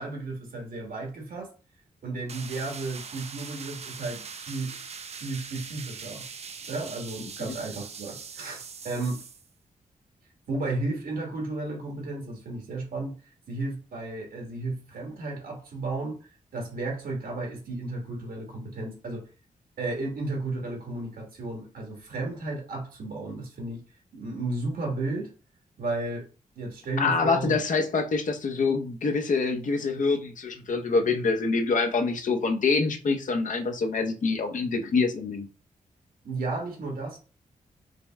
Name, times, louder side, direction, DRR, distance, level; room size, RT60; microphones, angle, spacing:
voice 1, 0.0-1.5 2.0-4.8 5.1-6.3 6.7-9.2 10.5-13.2 13.5-16.3 16.5-19.3 19.8-23.8 24.1-25.3 25.8-26.3 26.5-27.6 36.2-37.2, right 2 dB, 80° right, 1.5 m, -33 dB
sound 1, 2.3-9.5, right 6 dB, 45° right, 0.4 m, -41 dB
voice 2, 27.0-35.5, left 4 dB, 60° left, 0.7 m, -25 dB
5.1 x 2.1 x 3.5 m
cardioid pair, 90°, 15 cm